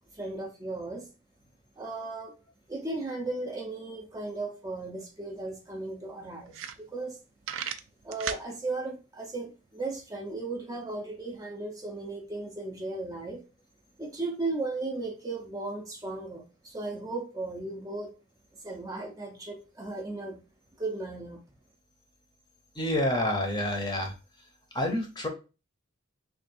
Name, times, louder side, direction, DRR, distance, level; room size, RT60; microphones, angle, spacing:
voice 1, 0.1-1.1 1.8-2.3 2.7-6.5 6.9-7.2 8.0-13.4 14.0-18.1 18.6-20.4 20.8-21.4, right 2 dB, 15° right, 0.5 m, -36 dB
sound 1, 5.1-5.2 5.5-5.6 6.1-6.2 6.5-7.1 7.4-8.5, right 9 dB, 75° right, 0.4 m, -35 dB
voice 2, 22.8-24.1 24.7-25.3, left 1 dB, 20° left, 0.7 m, -28 dB
3.4 x 2.4 x 4.1 m
head